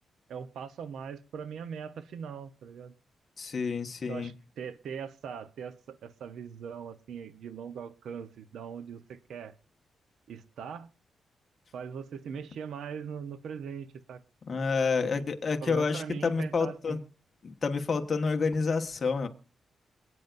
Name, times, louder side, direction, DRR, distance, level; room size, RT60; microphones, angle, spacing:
voice 1, 0.3-2.9 4.1-9.5 10.3-10.9 11.7-14.2 15.0-15.2 15.6-17.0, right 7 dB, 85° right, 0.8 m, -41 dB
voice 2, 3.4-4.3 14.4-17.0 17.4-19.3, left 4 dB, 35° left, 1.3 m, -29 dB
27.5 x 9.3 x 2.6 m
wide cardioid pair, 150°, 0 cm